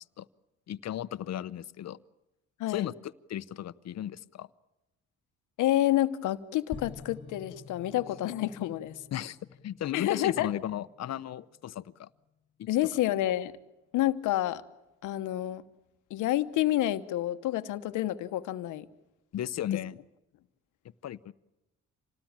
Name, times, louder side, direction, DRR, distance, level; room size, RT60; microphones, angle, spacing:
voice 1, 0.7-2.0 2.7-4.5 9.1-9.4 9.6-12.1 12.6-12.7 19.3-20.0 21.0-21.3, left 11 dB, 60° left, 16 dB, 0.9 m, -35 dB
voice 2, 5.6-9.0 9.9-10.5 12.7-13.5 13.9-14.6 15.0-15.6 16.1-18.9, left 14 dB, 90° left, 11 dB, 1.1 m, -29 dB
sound 1, 6.7-11.9, left 5 dB, 35° left, 1.9 m, -49 dB
27.0 x 19.0 x 8.9 m, 0.96 s
cardioid pair, 90°, 30 cm